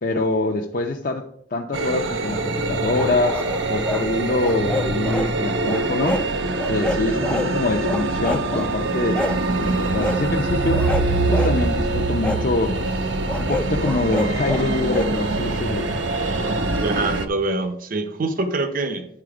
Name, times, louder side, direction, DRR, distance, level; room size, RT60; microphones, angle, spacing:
voice 1, 0.0-6.2 6.7-9.2 9.6-10.9 11.3-13.1 13.4-15.9, left 2 dB, 50° left, 0.6 m, -25 dB
sound 1, 1.7-17.3, right 2 dB, 80° right, 0.8 m, -24 dB
sound 2, 2.9-4.0 4.4-5.3 5.7-6.3 6.6-7.5 7.8-8.7 9.1-9.4 10.0-10.2 10.7-11.6 12.2-12.4 13.3-15.1, left 2 dB, 5° left, 0.4 m, -28 dB
sound 3, 7.2-13.9, left 2 dB, 65° left, 1.3 m, -37 dB
voice 2, 16.8-19.1, right 2 dB, 50° right, 0.7 m, -25 dB
10.5 x 4.2 x 4.8 m
head